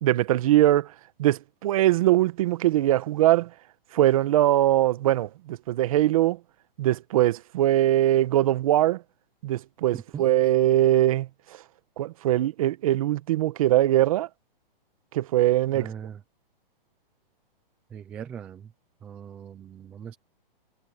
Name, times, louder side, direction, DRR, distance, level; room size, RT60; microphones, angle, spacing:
voice 1, 0.0-0.9 1.2-3.5 3.9-6.4 6.8-9.0 9.4-11.3 12.0-14.3 15.1-15.9, right 14 dB, 35° right, 1.2 m, -21 dB
voice 2, 15.7-16.2 17.9-18.7 19.0-20.2, right 8 dB, 5° right, 0.4 m, -39 dB
hypercardioid pair, 165°, 29 cm